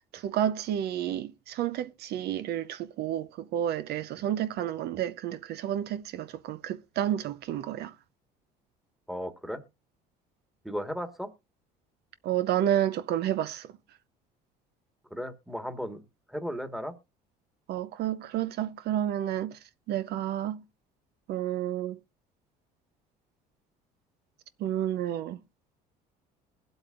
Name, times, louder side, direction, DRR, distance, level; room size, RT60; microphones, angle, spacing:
voice 1, 0.1-7.9 12.2-13.7 17.7-19.6 19.9-20.6 21.3-22.0 24.6-25.4, right 11 dB, 65° right, 0.7 m, -30 dB
voice 2, 9.1-9.6 10.6-11.3 15.1-16.9, equal, ahead, 1.5 m, -35 dB
21.0 x 8.1 x 2.5 m
cardioid pair, 105°, 18 cm